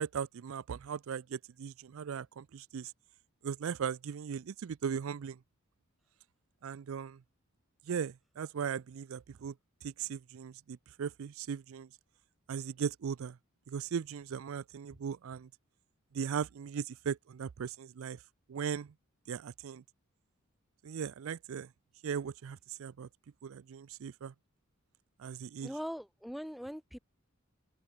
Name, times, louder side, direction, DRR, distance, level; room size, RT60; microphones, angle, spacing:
voice 1, 0.0-2.9 3.4-5.4 6.6-7.2 7.9-9.5 9.8-11.9 12.5-13.4 13.7-15.5 16.1-18.2 18.5-18.9 19.3-19.8 20.8-21.7 22.0-23.1 23.4-24.3 25.2-25.7, right 7 dB, 70° right, 0.4 m, -38 dB
voice 2, 25.6-27.0, equal, ahead, 0.7 m, -41 dB
open air
head